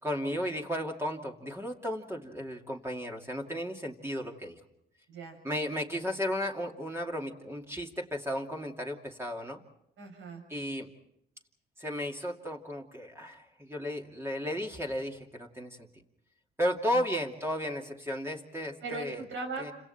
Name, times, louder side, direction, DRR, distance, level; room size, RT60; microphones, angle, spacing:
voice 1, 0.0-4.6 5.4-9.6 10.5-10.9 11.8-15.8 16.6-19.2 19.6-19.7, equal, 10° right, 0 dB, 2.6 m, -34 dB
voice 2, 5.1-5.4 10.0-10.4 16.9-17.0 18.8-19.7, right 3 dB, 75° right, 4 dB, 6.7 m, -38 dB
30.0 x 27.0 x 4.4 m, 0.77 s
cardioid pair, 90°, 20 cm